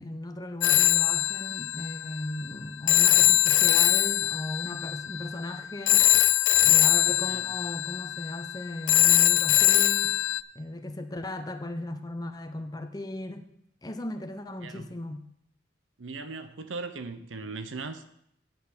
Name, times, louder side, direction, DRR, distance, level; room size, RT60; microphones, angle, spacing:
voice 1, 0.0-6.2 6.6-10.2 10.5-13.5 13.8-15.3, left 1 dB, 20° left, 0.8 m, -37 dB
Telephone, 0.6-10.4, left 14 dB, 70° left, 0.4 m, -22 dB
voice 2, 14.6-14.9 16.0-18.1, right 3 dB, 80° right, 0.9 m, -38 dB
9.0 x 6.1 x 7.4 m
head